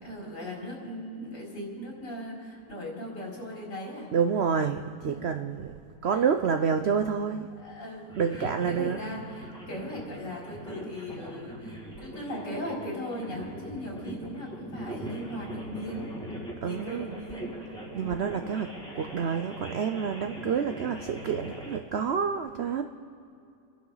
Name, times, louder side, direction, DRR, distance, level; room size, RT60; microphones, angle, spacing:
voice 1, 0.0-4.1 5.0-5.4 6.1-6.2 7.6-16.1 16.6-17.5 18.0-18.3, equal, 75° left, -4 dB, 4.5 m, -39 dB
voice 2, 4.1-5.7 6.0-7.5 8.2-9.0 16.6-17.2 17.9-22.8, right 6 dB, 85° right, 7 dB, 0.5 m, -28 dB
sound 1, 8.1-21.8, equal, 5° left, 2.2 m, -41 dB
29.5 x 11.0 x 4.0 m, 2.6 s
omnidirectional pair, 1.9 m